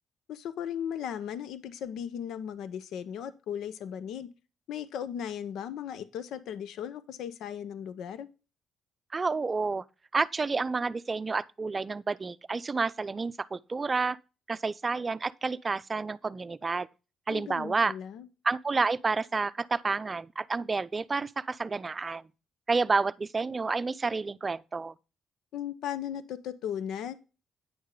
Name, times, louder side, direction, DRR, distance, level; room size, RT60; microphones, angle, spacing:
voice 1, 0.3-4.3 4.7-8.3 17.3-18.3 25.5-27.1, left 9 dB, 80° left, 0.8 m, -37 dB
voice 2, 9.1-9.8 10.1-14.2 14.5-16.9 17.3-17.9 18.4-22.2 22.7-24.9, right 4 dB, 30° right, 0.5 m, -30 dB
9.7 x 6.4 x 3.8 m
cardioid pair, 90°, 0 cm